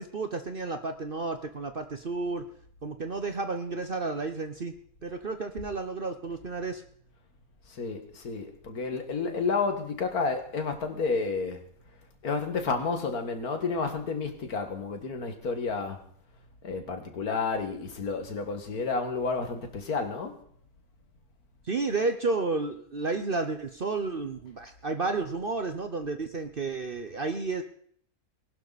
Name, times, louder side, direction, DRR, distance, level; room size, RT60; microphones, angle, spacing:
voice 1, 0.0-2.5 2.8-4.8 5.0-6.8 21.6-27.6, right 3 dB, 40° right, 1.0 m, -31 dB
voice 2, 7.7-11.6 12.2-16.0 16.6-20.4, left 4 dB, 90° left, 2.3 m, -31 dB
20.0 x 11.5 x 4.2 m
omnidirectional pair, 1.5 m